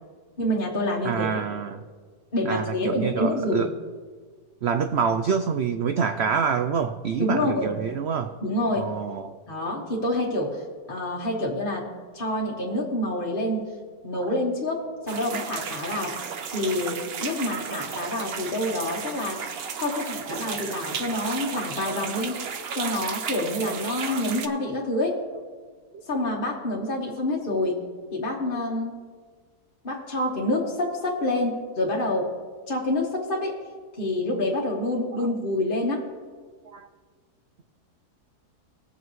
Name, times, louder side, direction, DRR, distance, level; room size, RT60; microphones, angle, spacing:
voice 1, 0.4-1.4 2.3-3.7 7.2-7.7 8.4-8.9 9.5-10.6 10.9-11.9 12.1-13.7 14.0-16.2 16.5-19.5 19.8-22.4 22.7-25.2 26.1-27.8 28.1-29.0 29.8-32.3 32.7-33.6 34.0-36.1, left 1 dB, 35° left, -2 dB, 1.4 m, -27 dB
voice 2, 1.0-1.9 2.4-3.7 4.6-8.4 8.8-9.4 14.2-14.3 19.9-20.4 21.8-22.1 22.7-23.0 24.1-24.2 25.9-26.0 28.5-28.6 35.1-35.3 36.6-36.9, right 6 dB, 90° right, 8 dB, 0.5 m, -27 dB
sound 1, 15.1-24.5, right 6 dB, 55° right, 0.7 m, -34 dB
20.0 x 7.7 x 3.1 m, 1.6 s
omnidirectional pair, 1.7 m